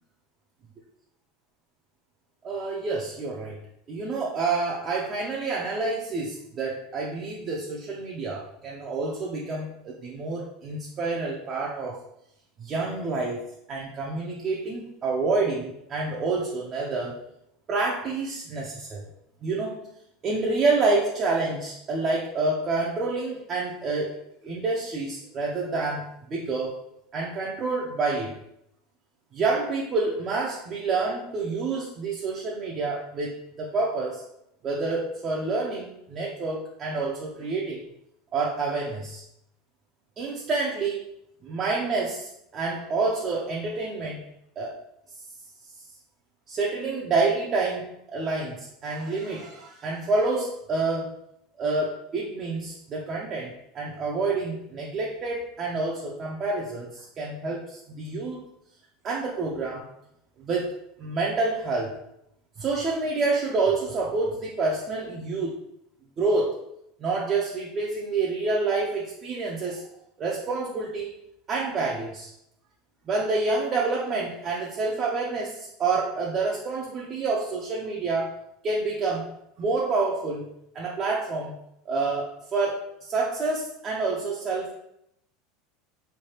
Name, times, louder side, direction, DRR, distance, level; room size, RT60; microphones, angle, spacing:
voice 1, 2.4-3.6 3.9-12.0 12.6-17.2 17.7-19.0 19.4-19.8 20.2-26.8 27.1-28.3 29.3-34.2 34.6-37.8 38.3-39.2 40.2-41.1 41.4-44.2 44.6-44.8 46.5-51.1 51.6-58.4 59.0-59.9 60.4-60.7 61.0-62.0 62.6-65.6 66.2-66.6 67.0-69.9 70.2-71.1 71.5-72.3 73.1-78.4 78.6-79.3 79.6-80.5 80.7-81.6 81.9-84.7, right 3 dB, 25° right, -3 dB, 0.4 m, -28 dB
4.5 x 3.2 x 2.8 m, 0.78 s
supercardioid pair, 175°, 0 cm